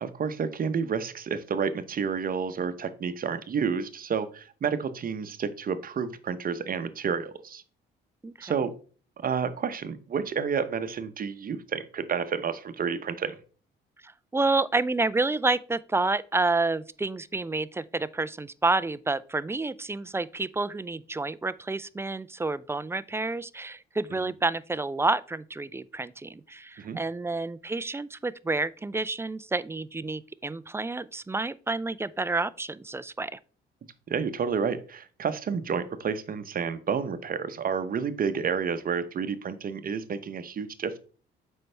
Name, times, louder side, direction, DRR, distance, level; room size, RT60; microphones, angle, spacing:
voice 1, 0.0-7.6 8.4-8.7 9.2-13.4 24.1-24.3 26.8-27.0 34.1-41.0, right 6 dB, 45° right, 0.8 m, -30 dB
voice 2, 8.2-8.6 14.0-33.4, right 3 dB, 15° right, 0.3 m, -29 dB
7.7 x 5.4 x 3.3 m
cardioid pair, 90°, 20 cm